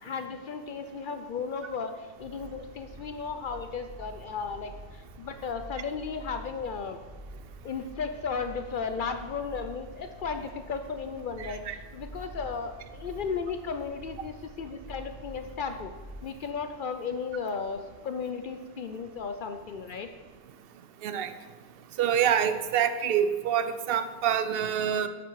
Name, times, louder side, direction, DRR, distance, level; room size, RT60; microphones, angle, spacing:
voice 1, 0.0-7.0 7.6-15.9 16.2-20.1, left 5 dB, 60° left, 8 dB, 0.6 m, -35 dB
sound 1, 2.1-16.5, right 1 dB, 15° left, 2.3 m, -47 dB
voice 2, 11.4-11.7 21.0-21.3 22.0-25.1, right 9 dB, 65° right, 10 dB, 0.7 m, -26 dB
8.4 x 6.0 x 4.6 m, 1.3 s
omnidirectional pair, 1.1 m